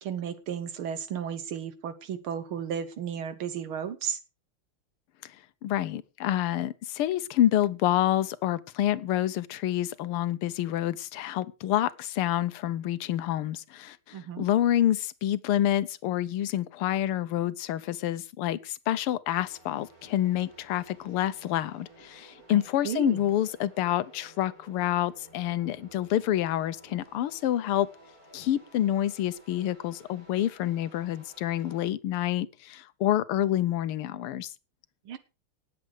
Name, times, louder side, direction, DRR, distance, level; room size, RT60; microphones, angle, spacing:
voice 1, 0.0-4.2 14.1-14.5 22.5-23.2 35.1-35.2, right 8 dB, 75° right, 1.9 m, -34 dB
voice 2, 5.6-27.9 28.3-34.5, left 12 dB, 85° left, 1.7 m, -28 dB
sound 1, 19.3-31.9, right 2 dB, 40° right, 7.7 m, -55 dB
19.0 x 8.0 x 4.9 m
omnidirectional pair, 2.4 m